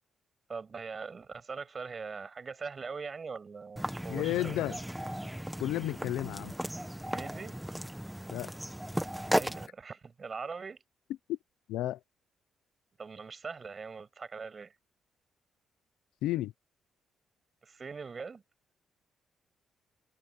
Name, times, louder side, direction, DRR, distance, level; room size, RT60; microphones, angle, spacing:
voice 1, 0.5-4.6 6.8-7.6 9.4-10.8 13.0-14.7 17.6-18.4, right 5 dB, 35° right, 7.5 m, -42 dB
sound 1, 3.8-9.7, equal, 5° right, 1.7 m, -35 dB
voice 2, 4.1-4.8 5.6-6.5 8.3-8.5 11.3-11.4 11.7-12.0 16.2-16.5, left 14 dB, 90° left, 0.8 m, -32 dB
cardioid pair, 90°, 0 cm